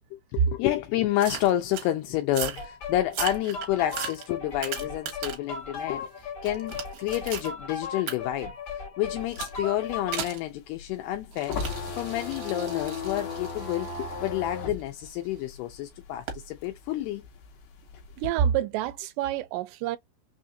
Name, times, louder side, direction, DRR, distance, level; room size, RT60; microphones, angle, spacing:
voice 1, 0.1-8.5 9.0-11.6 11.9-17.2, left 13 dB, 85° left, 2.6 m, -29 dB
sound 1, 1.2-1.9 2.3-2.7 3.1-5.5 5.9-7.5 8.1-8.2 9.3-9.6 10.1-10.4 11.3-15.3 16.3-16.5, right 9 dB, 70° right, 2.8 m, -37 dB
sound 2, 2.6-10.3, left 5 dB, 45° left, 1.7 m, -37 dB
sound 3, 9.1-16.2 16.5-18.3, left 4 dB, 65° left, 2.3 m, -36 dB
voice 2, 18.2-20.0, right 9 dB, 85° right, 2.7 m, -27 dB
6.2 x 2.5 x 2.6 m
omnidirectional pair, 4.8 m